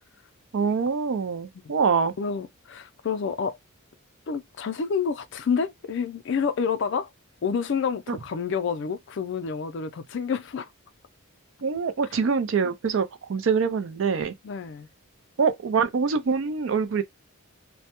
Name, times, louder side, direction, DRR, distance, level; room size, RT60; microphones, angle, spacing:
voice 1, 0.5-2.1 8.1-8.2 11.6-14.3 15.4-17.0, right 5 dB, 60° right, 0.4 m, -24 dB
voice 2, 2.2-3.6 4.3-7.1 7.4-10.7 14.4-14.9, left 6 dB, 55° left, 0.3 m, -28 dB
2.1 x 2.1 x 2.8 m
head